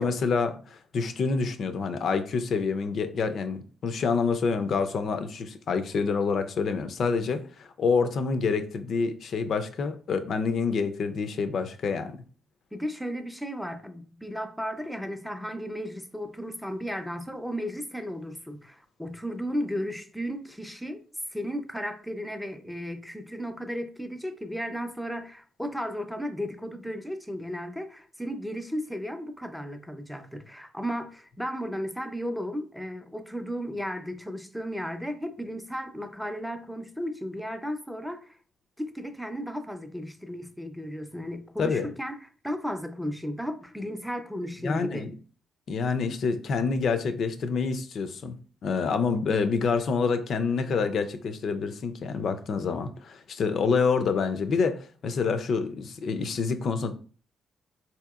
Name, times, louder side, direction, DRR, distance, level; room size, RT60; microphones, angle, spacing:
voice 1, 0.0-12.2 41.6-41.9 44.6-45.1 45.7-48.4 48.6-56.9, left 5 dB, 60° left, 0.4 m, -27 dB
voice 2, 12.7-21.0 21.3-38.4 38.8-42.2 42.4-45.1, equal, ahead, 0.5 m, -34 dB
4.0 x 2.8 x 2.4 m
cardioid pair, 90°, 0 cm